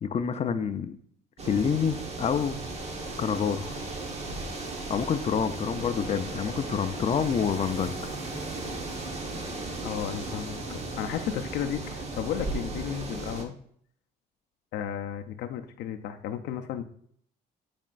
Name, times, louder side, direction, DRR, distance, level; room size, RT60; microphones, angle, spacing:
voice 1, 0.0-1.0 1.4-2.6 3.2-3.8 4.9-8.0, left 7 dB, 40° left, 9 dB, 0.5 m, -27 dB
sound 1, 1.4-13.4, right 2 dB, 40° right, 1.2 m, -36 dB
voice 2, 9.8-13.5 14.7-16.8, left 9 dB, 80° left, 5 dB, 0.6 m, -34 dB
9.3 x 4.4 x 2.5 m, 0.63 s
cardioid pair, 110°, 17 cm